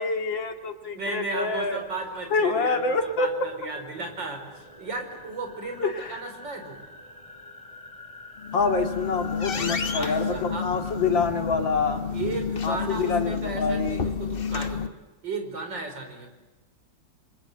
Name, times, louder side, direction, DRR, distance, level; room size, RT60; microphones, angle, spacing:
voice 1, 0.0-1.8 2.3-3.3 5.8-6.2 8.5-12.0 12.6-14.0, left 4 dB, 90° left, 5 dB, 3.0 m, -26 dB
voice 2, 0.9-6.8 9.5-10.7 12.1-15.0 15.2-16.3, right 3 dB, 75° right, 5 dB, 5.7 m, -35 dB
sound 1, 1.3-14.0, left 3 dB, 15° left, 4.1 m, -47 dB
door squeak, 8.4-14.9, left 6 dB, 35° left, 1.2 m, -30 dB
30.0 x 24.5 x 8.0 m, 1.1 s
omnidirectional pair, 2.0 m